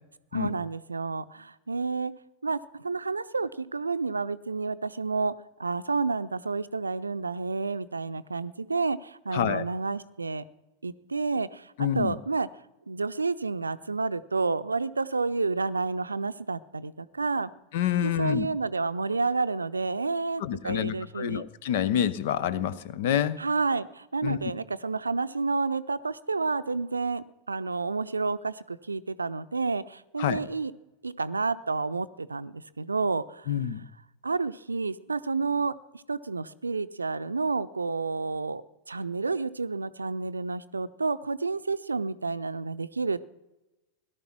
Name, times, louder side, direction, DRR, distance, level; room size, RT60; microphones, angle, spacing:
voice 1, 0.3-2.1 2.4-5.3 5.6-10.4 10.8-12.5 12.9-17.5 18.0-21.4 23.4-30.7 31.0-33.6 34.2-35.7 36.1-38.6 38.9-43.3, right 4 dB, 80° right, 15 dB, 0.6 m, -30 dB
voice 2, 9.3-9.7 11.8-12.2 17.7-18.5 20.4-23.4 24.2-24.4 30.2-30.4 33.5-33.8, left 10 dB, 55° left, 18 dB, 0.8 m, -27 dB
17.5 x 11.5 x 6.0 m, 0.99 s
figure-of-eight pair, 90°, 0 cm